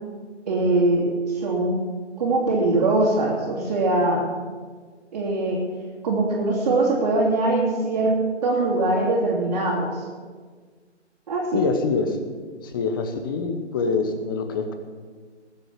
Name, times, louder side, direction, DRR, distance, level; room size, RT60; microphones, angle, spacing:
voice 1, 0.5-1.8 2.2-4.2 5.1-5.6 6.0-8.1 8.4-9.9 11.3-11.7, right 2 dB, 35° right, -4 dB, 3.1 m, -22 dB
voice 2, 11.5-12.2 12.6-14.7, left 4 dB, 20° left, 7 dB, 1.1 m, -25 dB
19.5 x 8.0 x 7.2 m, 1.5 s
figure-of-eight pair, 150°, 35 cm